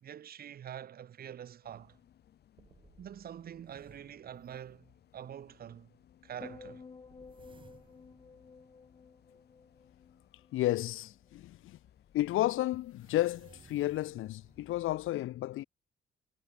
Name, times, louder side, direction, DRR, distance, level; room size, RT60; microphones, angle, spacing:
voice 1, 0.0-2.0 3.0-5.9 6.2-6.9, right 9 dB, 50° right, 1.7 m, -46 dB
sound 1, 1.6-15.1, left 10 dB, 55° left, 1.9 m, -64 dB
sound 2, 2.6-5.1 7.1-9.4 11.6-11.8 12.7-15.0, right 5 dB, 25° right, 2.5 m, -62 dB
sound 3, 6.4-10.8 11.1-11.5, left 4 dB, 25° left, 2.9 m, -53 dB
voice 2, 10.5-11.8 12.1-15.6, left 15 dB, 80° left, 0.7 m, -32 dB
cardioid pair, 175°, 21 cm